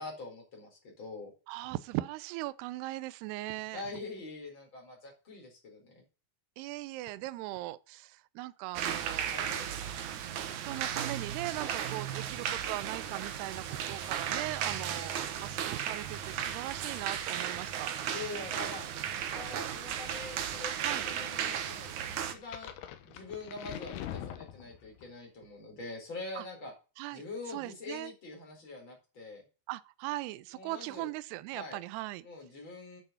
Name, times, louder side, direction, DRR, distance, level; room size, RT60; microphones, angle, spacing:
voice 1, 0.0-1.3 3.7-6.0 9.3-9.7 18.1-18.9 19.3-22.7 23.0-26.7 27.1-29.4 30.5-31.1 31.5-31.8 32.2-33.0, left 3 dB, 30° left, 5.1 m, -44 dB
voice 2, 1.5-3.8 6.6-9.3 10.5-17.9 20.8-21.1 26.4-26.5 27.0-27.2 27.5-28.1 29.7-32.3, right 17 dB, 80° right, 2.7 m, -39 dB
sound 1, 8.8-22.3, right 9 dB, 65° right, 2.0 m, -35 dB
sound 2, 22.2-25.1, left 11 dB, 75° left, 3.0 m, -43 dB
9.2 x 6.9 x 7.0 m
omnidirectional pair, 4.7 m